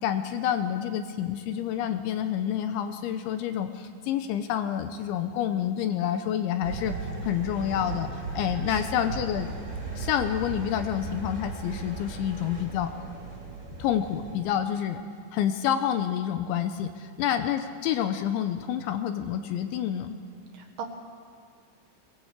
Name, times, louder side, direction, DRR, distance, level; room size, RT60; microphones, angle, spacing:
voice 1, 0.0-6.9 7.2-9.5 10.0-12.9 13.8-15.0 15.3-20.2, left 10 dB, 80° left, 8 dB, 3.0 m, -28 dB
sound 1, 6.6-14.3, right 4 dB, 25° right, 4.2 m, -37 dB
voice 2, 8.7-9.0 20.5-20.8, right 6 dB, 65° right, 2 dB, 3.1 m, -39 dB
21.5 x 20.5 x 8.3 m, 2.1 s
omnidirectional pair, 5.8 m